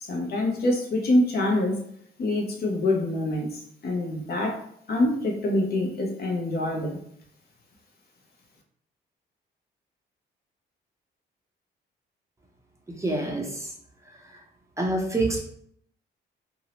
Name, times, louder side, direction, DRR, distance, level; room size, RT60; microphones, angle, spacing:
voice 1, 0.1-1.8 2.2-4.6 4.9-7.0, left 1 dB, 50° left, 1 dB, 0.7 m, -25 dB
voice 2, 13.0-13.7 14.8-15.4, right 2 dB, 15° right, -1 dB, 0.6 m, -26 dB
2.7 x 2.0 x 2.8 m, 0.66 s
cardioid pair, 90°, 20 cm